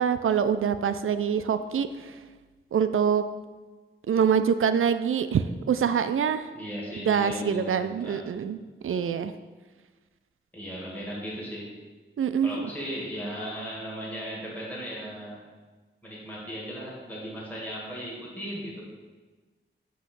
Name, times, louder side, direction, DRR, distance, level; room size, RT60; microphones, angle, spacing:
voice 1, 0.0-2.1 2.7-3.2 4.1-6.5 7.1-8.6 8.8-9.3 12.2-12.7, right 7 dB, 80° right, 11 dB, 0.4 m, -25 dB
voice 2, 6.5-8.2 10.5-11.7 12.4-15.4 16.0-18.9, equal, 10° left, -6 dB, 1.8 m, -36 dB
7.7 x 3.1 x 5.9 m, 1.3 s
wide cardioid pair, 100°, 21 cm